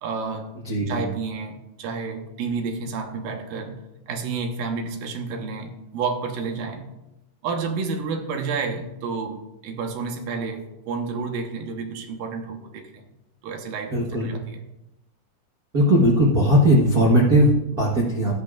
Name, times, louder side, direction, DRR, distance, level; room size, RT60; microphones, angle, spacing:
voice 1, 0.0-0.5 0.9-3.8 4.1-6.9 7.4-13.0 13.4-14.7, right 4 dB, 85° right, 4 dB, 2.8 m, -30 dB
voice 2, 0.6-1.0 13.9-14.4 15.7-18.4, equal, 70° right, -3 dB, 0.8 m, -18 dB
16.0 x 12.0 x 2.5 m, 0.93 s
omnidirectional pair, 3.9 m